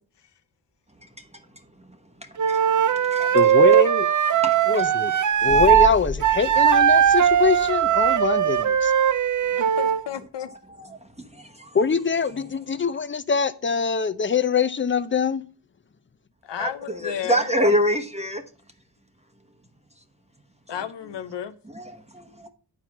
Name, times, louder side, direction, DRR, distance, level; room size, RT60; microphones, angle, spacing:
Wind instrument woodwind instrument, 2.4-5.9 6.2-10.0, right 9 dB, 45° right, 0.5 m, -19 dB
voice 1, 3.3-4.1 4.7-5.1 5.4-8.9 11.7-15.4, left 5 dB, 30° left, 0.6 m, -23 dB
voice 2, 4.4-4.9 9.6-9.7 10.4-11.0 11.7-11.8 16.6-18.4 20.7-20.8 21.7-22.5, equal, 15° right, 1.0 m, -26 dB
sound 1, 5.3-9.7, left 2 dB, 15° left, 1.2 m, -36 dB
voice 3, 9.6-10.5 16.4-17.4 17.9-18.0 20.7-21.6, left 9 dB, 80° left, 0.9 m, -33 dB
9.7 x 4.3 x 6.0 m
wide cardioid pair, 95°, 41 cm